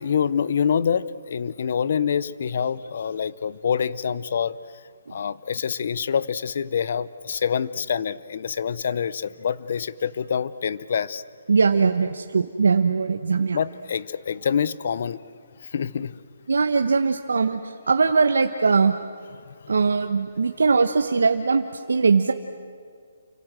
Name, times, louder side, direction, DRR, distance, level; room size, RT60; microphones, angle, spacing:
voice 1, 0.0-4.8 5.1-11.2 13.5-15.2 15.6-16.2 19.4-19.7, left 7 dB, 40° left, 18 dB, 0.7 m, -26 dB
voice 2, 11.5-13.6 16.5-19.0 19.7-22.3, right 4 dB, 90° right, 6 dB, 1.2 m, -21 dB
29.5 x 25.0 x 7.6 m, 2.1 s
hypercardioid pair, 180°, 0 cm